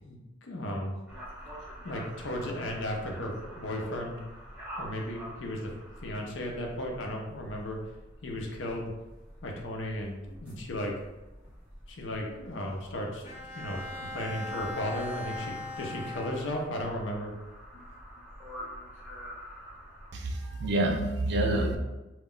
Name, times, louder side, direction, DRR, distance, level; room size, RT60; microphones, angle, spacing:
voice 1, 0.0-1.0 1.8-4.2 4.8-5.7 6.0-7.8 8.2-8.9 9.4-10.9 11.9-13.2 13.5-17.4 17.7-17.8, left 1 dB, 80° left, 0 dB, 0.6 m, -35 dB
sound 1, 1.1-20.1, equal, 10° right, 0.8 m, -47 dB
Bowed string instrument, 13.2-16.9, left 2 dB, 35° left, 0.5 m, -40 dB
voice 2, 20.1-21.8, right 1 dB, 65° right, 3 dB, 0.4 m, -27 dB
2.3 x 2.1 x 3.7 m, 1.1 s
head